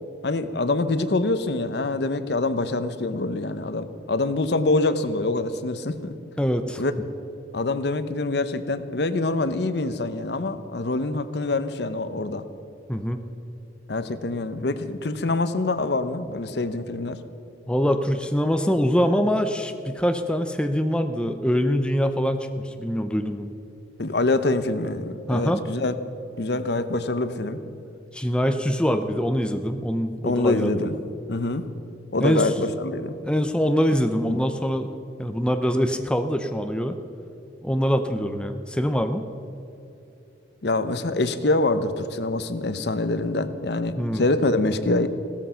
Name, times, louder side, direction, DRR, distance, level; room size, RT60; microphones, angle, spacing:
voice 1, 0.2-6.1 6.8-6.9 7.5-12.4 13.9-17.2 24.0-25.9 26.4-27.6 30.2-31.0 31.3-31.7 32.1-33.1 34.3-34.4 40.6-45.1, left 2 dB, 60° left, 12 dB, 0.8 m, -25 dB
voice 2, 6.4-6.8 12.9-13.2 17.7-23.5 25.3-25.6 28.1-30.7 32.2-32.5 33.2-34.9 35.2-37.0 37.6-39.3 44.0-44.2, equal, 5° left, 7 dB, 0.6 m, -24 dB
16.0 x 13.5 x 5.6 m, 2.9 s
head